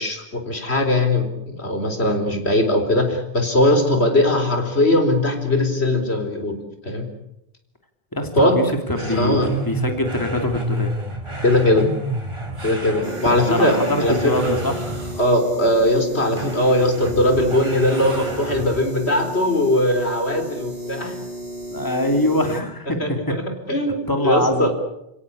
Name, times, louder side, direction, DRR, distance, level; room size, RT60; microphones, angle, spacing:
voice 1, 0.0-6.6 6.8-7.1 8.4-8.6 9.1-9.5 11.4-11.9 12.6-14.5 15.2-21.2 23.0-23.4 23.7-24.7, left 1 dB, 75° left, 6 dB, 4.3 m, -20 dB
voice 2, 8.1-10.9 13.3-14.8 21.7-23.4 24.1-24.7, left 1 dB, 20° left, 5 dB, 2.9 m, -23 dB
sound 1, 9.0-15.4 16.4-18.9, right 1 dB, 25° right, 4.9 m, -30 dB
sound 2, 12.5-13.3 14.3-15.5 17.8-18.6, right 2 dB, 70° right, 5.9 m, -42 dB
sound 3, 13.0-22.6, right 1 dB, 85° right, 4.4 m, -34 dB
29.5 x 18.0 x 8.6 m, 0.86 s
omnidirectional pair, 1.1 m